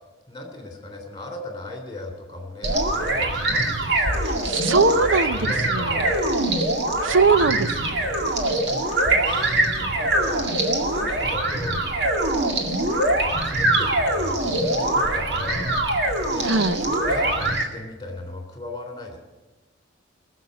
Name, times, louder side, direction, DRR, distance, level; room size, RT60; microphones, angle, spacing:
voice 1, 0.3-4.4 4.9-6.3 8.4-10.5 10.9-11.8 12.6-12.9 13.4-15.8 16.3-16.5 16.9-19.2, left 2 dB, 20° left, 3 dB, 3.3 m, -37 dB
sound 1, 2.6-17.6, right 1 dB, 55° right, 2.0 m, -23 dB
voice 2, 4.3-5.4 5.7-6.0 7.0-8.0 16.5-16.8, right 4 dB, 80° right, 12 dB, 0.7 m, -21 dB
20.5 x 7.3 x 9.3 m, 1.1 s
head